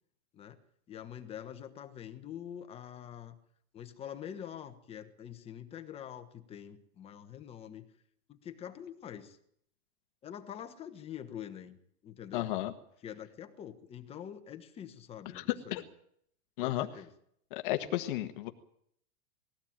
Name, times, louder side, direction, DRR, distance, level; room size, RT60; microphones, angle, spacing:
voice 1, 0.9-3.4 3.7-7.9 8.3-9.4 10.2-11.8 12.0-12.5 13.0-15.9 16.6-17.1, left 9 dB, 15° left, 7 dB, 1.3 m, -45 dB
voice 2, 12.3-12.7 15.3-15.4 15.7-15.8 16.6-16.9 17.5-18.5, left 15 dB, 40° left, 8 dB, 1.3 m, -33 dB
20.5 x 16.0 x 8.9 m, 0.68 s
supercardioid pair, 170°, 40 cm